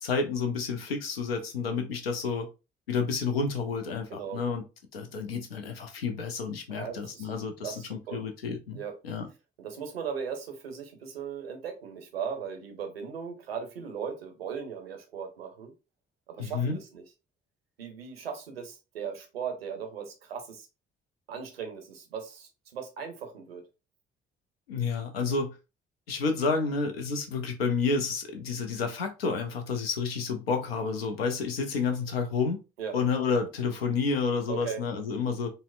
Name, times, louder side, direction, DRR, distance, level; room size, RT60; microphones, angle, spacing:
voice 1, 0.0-2.5 2.9-4.6 4.9-9.3 16.4-16.8 24.7-25.6 26.1-32.6 32.9-35.5, left 4 dB, 80° left, 0.5 m, -30 dB
voice 2, 6.7-7.3 7.6-8.3 8.7-8.9 9.6-15.7 16.3-17.0 17.8-20.7 21.3-23.6 32.8-33.0 34.5-34.8, right 7 dB, 80° right, 0.6 m, -38 dB
3.9 x 2.0 x 2.4 m
figure-of-eight pair, 40°, 29 cm